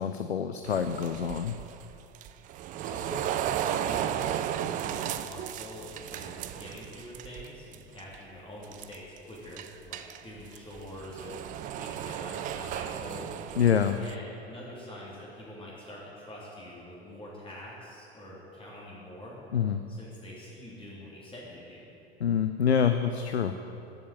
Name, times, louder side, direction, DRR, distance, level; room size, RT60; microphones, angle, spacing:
voice 1, 0.0-1.6 13.6-14.0 19.5-19.8 22.2-23.5, left 7 dB, 75° left, 9 dB, 0.7 m, -26 dB
sound 1, 0.6-7.5 7.7-8.2 8.6-9.2 9.6-14.1, right 10 dB, 25° right, 0.5 m, -35 dB
voice 2, 2.8-11.4 11.8-13.3 14.0-19.4 19.9-21.8, left 1 dB, 15° left, -6 dB, 3.5 m, -45 dB
15.0 x 7.4 x 9.2 m, 2.7 s
figure-of-eight pair, 85°, 32 cm